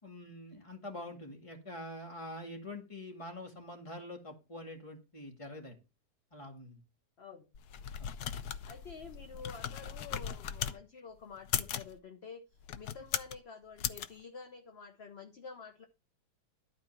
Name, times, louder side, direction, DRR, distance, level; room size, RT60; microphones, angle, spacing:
voice 1, 0.0-5.8 6.3-6.8 8.0-8.1, left 1 dB, 20° left, 1 dB, 2.1 m, -45 dB
sound 1, 7.5-10.8 11.4-11.9 12.6-13.4 13.8-14.1, left 9 dB, 70° left, 1.2 m, -37 dB
voice 2, 8.7-15.9, left 5 dB, 45° left, 5 dB, 1.1 m, -49 dB
12.0 x 4.4 x 5.8 m, 0.29 s
omnidirectional pair, 1.8 m